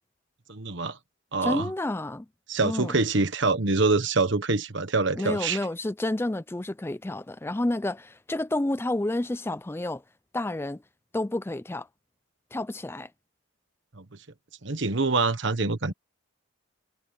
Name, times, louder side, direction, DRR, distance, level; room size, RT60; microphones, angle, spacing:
voice 1, 0.5-1.0 1.3-1.7 2.5-5.6 13.9-14.0 14.6-15.9, right 3 dB, 60° right, 1.3 m, -25 dB
voice 2, 1.4-2.3 2.6-2.9 5.2-10.0 10.3-10.8 11.1-11.9 12.5-13.1, left 1 dB, 10° left, 0.4 m, -30 dB
head